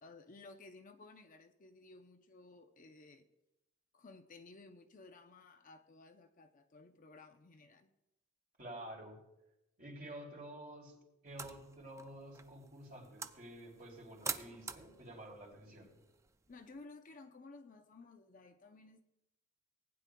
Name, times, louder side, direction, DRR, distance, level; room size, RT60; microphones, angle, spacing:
voice 1, 0.0-3.3 3.9-7.9 16.5-19.0, left 3 dB, 40° left, 6 dB, 0.6 m, -56 dB
voice 2, 8.6-9.2 9.8-16.0, right 1 dB, 40° right, -1 dB, 2.8 m, -50 dB
sound 1, 11.3-16.8, right 5 dB, 15° right, 0.3 m, -48 dB
19.0 x 9.7 x 2.2 m, 0.94 s
head